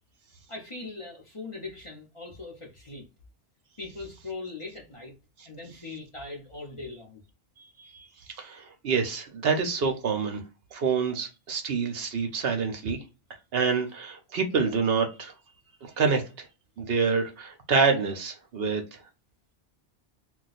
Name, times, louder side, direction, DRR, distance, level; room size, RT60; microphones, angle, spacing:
voice 1, 0.5-3.0 3.8-5.1 5.5-7.2, left 3 dB, 35° left, 0.7 m, -40 dB
voice 2, 7.8-10.4 10.7-13.0 13.5-15.3 15.8-16.5 16.8-19.0, right 5 dB, 65° right, 0.8 m, -27 dB
2.3 x 2.3 x 4.0 m
omnidirectional pair, 1.2 m